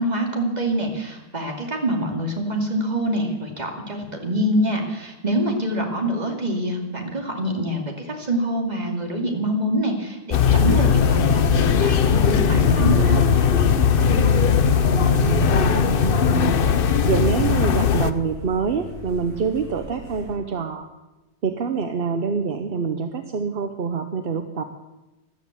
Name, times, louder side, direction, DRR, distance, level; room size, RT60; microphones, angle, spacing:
voice 1, 0.0-13.2, right 1 dB, 25° right, 1 dB, 2.7 m, -25 dB
sound 1, 10.3-18.1, left 6 dB, 50° left, 0.7 m, -18 dB
sound 2, 12.9-20.3, equal, 60° right, 6.3 m, -39 dB
voice 2, 14.0-20.9 21.4-24.6, right 5 dB, 45° right, 7 dB, 0.9 m, -26 dB
13.5 x 12.0 x 8.5 m, 1.0 s
omnidirectional pair, 1.6 m